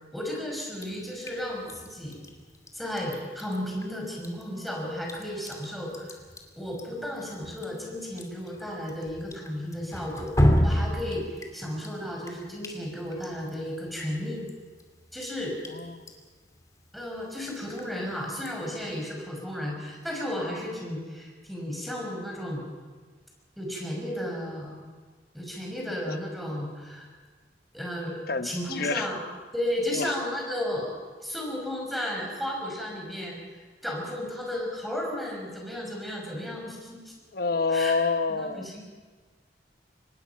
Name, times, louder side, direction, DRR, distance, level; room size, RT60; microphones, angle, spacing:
voice 1, 0.1-2.2 2.7-6.2 6.6-11.2 11.5-14.5 15.1-15.5 16.9-22.6 23.6-24.7 25.3-27.1 27.7-29.2 29.5-30.9 31.2-37.1 37.7-37.9 38.3-38.8, left 1 dB, ahead, -2 dB, 5.7 m, -34 dB
Drip, 0.8-19.0, equal, 20° left, 2.6 m, -34 dB
voice 2, 15.7-16.0 25.9-26.2 28.3-29.1 29.9-30.1 37.3-38.7, left 4 dB, 60° left, 10 dB, 1.1 m, -28 dB
25.0 x 20.0 x 5.8 m, 1.5 s
head